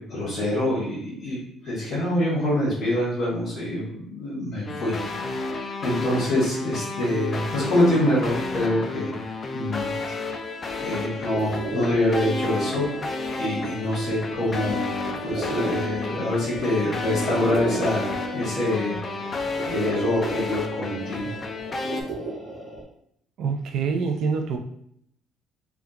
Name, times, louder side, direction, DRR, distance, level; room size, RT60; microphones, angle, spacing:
voice 1, 0.0-9.1 9.5-9.9 10.2-10.4 10.8-13.0 13.3-14.9 15.2-19.3 19.6-21.3, left 1 dB, 45° left, -8 dB, 1.5 m, -25 dB
sound 1, 4.7-22.0, left 3 dB, 25° left, 0.3 m, -31 dB
sound 2, 10.6-22.8, right 2 dB, 20° right, 1.2 m, -35 dB
voice 2, 23.4-24.6, right 5 dB, 60° right, 5 dB, 0.4 m, -25 dB
3.6 x 2.3 x 2.8 m, 0.71 s
cardioid pair, 160°, 0 cm